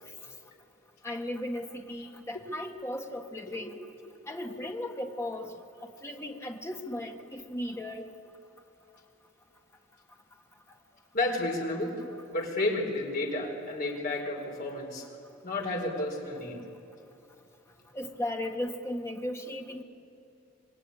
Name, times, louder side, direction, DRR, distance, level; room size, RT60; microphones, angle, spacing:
voice 1, 1.0-3.8 4.3-5.5 5.8-8.1 17.9-19.8, left 1 dB, 15° left, 2 dB, 1.7 m, -36 dB
voice 2, 11.1-12.0 12.3-15.1 15.4-16.6, left 2 dB, 50° left, 1 dB, 4.6 m, -31 dB
26.5 x 21.5 x 9.9 m, 2.8 s
head